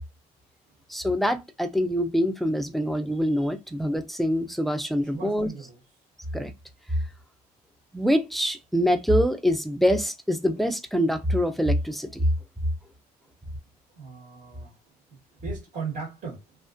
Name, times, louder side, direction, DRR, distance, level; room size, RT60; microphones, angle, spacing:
voice 1, 0.9-5.5 6.3-6.5 7.9-12.2, equal, ahead, 0.3 m, -25 dB
voice 2, 5.1-5.8 13.9-14.8 15.1-16.6, right 5 dB, 55° right, 1.2 m, -38 dB
2.4 x 2.2 x 2.5 m
cardioid pair, 110°, 17 cm